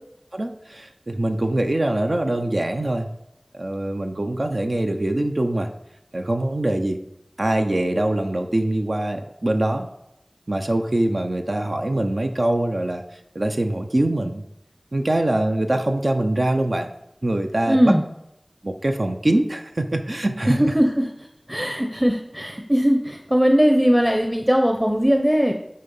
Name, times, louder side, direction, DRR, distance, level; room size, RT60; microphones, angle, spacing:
voice 1, 0.3-3.1 3.5-5.7 6.1-7.0 7.4-9.9 10.5-13.0 13.3-14.4 14.9-16.9 17.2-17.9 18.6-20.7, right 1 dB, 70° right, 4 dB, 0.6 m, -23 dB
voice 2, 17.7-18.0 20.5-25.5, equal, 10° right, 3 dB, 0.7 m, -19 dB
9.6 x 3.2 x 5.4 m, 0.83 s
wide cardioid pair, 45°, 0 cm